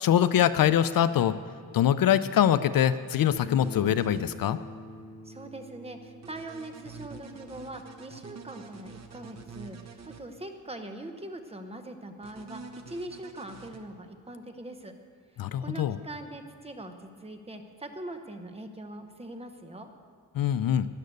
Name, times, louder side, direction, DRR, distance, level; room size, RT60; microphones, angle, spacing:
voice 1, 0.0-1.3 1.7-4.6 15.4-16.0 20.3-20.9, left 10 dB, 60° left, 14 dB, 0.5 m, -23 dB
Bass guitar, 3.3-9.6, left 1 dB, 20° left, 4.0 m, -46 dB
sound 1, 3.6-4.2 6.2-10.2 12.2-13.8, right 5 dB, 45° right, 1.0 m, -46 dB
voice 2, 5.2-14.9 15.6-19.9, right 1 dB, 15° right, 5 dB, 0.9 m, -42 dB
13.5 x 10.5 x 6.6 m, 2.2 s
wide cardioid pair, 155°, 38 cm